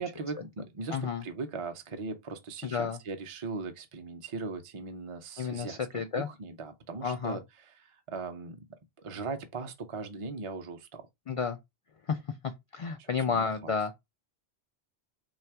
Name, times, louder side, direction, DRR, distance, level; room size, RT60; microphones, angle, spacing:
voice 1, 0.0-5.8 6.1-8.6 9.0-11.1 13.0-13.7, right 4 dB, 40° right, 0.5 m, -39 dB
voice 2, 0.9-1.2 2.6-3.0 5.4-6.3 7.0-7.4 11.3-11.6 12.1-13.9, left 6 dB, 55° left, 0.4 m, -31 dB
3.3 x 2.4 x 4.4 m
omnidirectional pair, 1.0 m